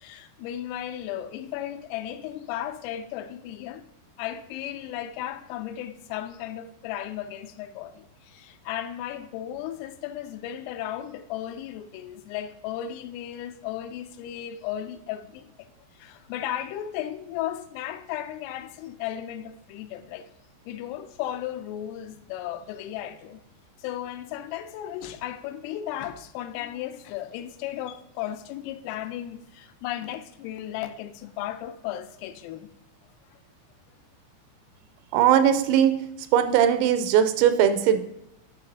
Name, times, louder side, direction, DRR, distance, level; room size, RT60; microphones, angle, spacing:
voice 1, 0.0-3.8 4.2-15.7 15.9-20.3 20.7-23.4 23.8-32.7, left 11 dB, 85° left, 3.2 m, -35 dB
voice 2, 35.1-35.9 36.3-38.0, right 9 dB, 90° right, 3.3 m, -19 dB
9.6 x 6.6 x 2.8 m
omnidirectional pair, 5.9 m